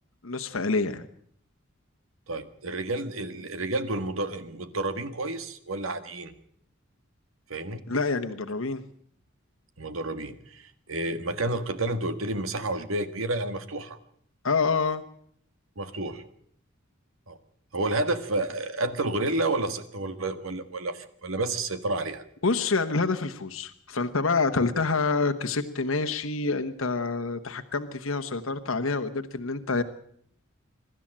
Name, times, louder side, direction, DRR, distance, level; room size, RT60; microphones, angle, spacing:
voice 1, 0.2-1.1 7.9-8.8 14.4-15.0 22.4-29.8, left 4 dB, 75° left, 7 dB, 1.2 m, -27 dB
voice 2, 2.3-6.3 7.5-7.9 9.8-14.0 15.8-16.2 17.3-17.4 17.7-22.2, right 2 dB, 75° right, 10 dB, 1.8 m, -30 dB
24.0 x 12.5 x 8.8 m, 0.65 s
head